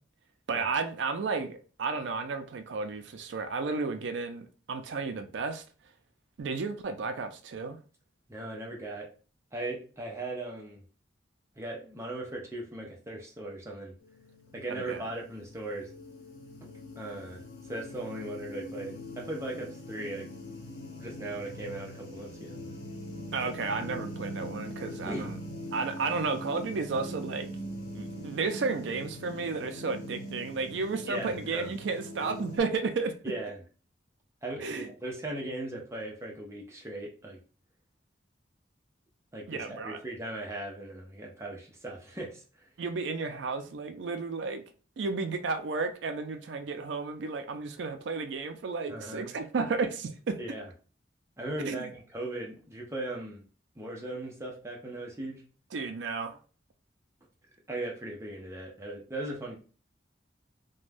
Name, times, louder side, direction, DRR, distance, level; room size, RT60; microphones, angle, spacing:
voice 1, 0.5-5.6 6.4-7.8 14.7-15.1 23.3-25.4 25.7-27.5 27.9-33.1 34.6-34.9 39.5-40.0 42.8-44.6 45.0-50.4 51.6-51.9 55.7-56.4, right 4 dB, 75° right, 0.4 m, -33 dB
voice 2, 8.3-9.1 9.5-10.8 11.6-13.9 14.5-15.9 16.6-17.4 17.7-20.3 21.0-22.8 25.1-25.3 31.1-31.7 33.2-33.6 34.4-37.4 39.3-42.7 48.9-49.3 50.4-50.6 51.4-53.4 53.8-55.4 57.7-59.6, right 2 dB, 15° right, 0.6 m, -38 dB
sound 1, 14.0-32.6, equal, 75° left, 0.9 m, -42 dB
2.5 x 2.2 x 3.3 m
head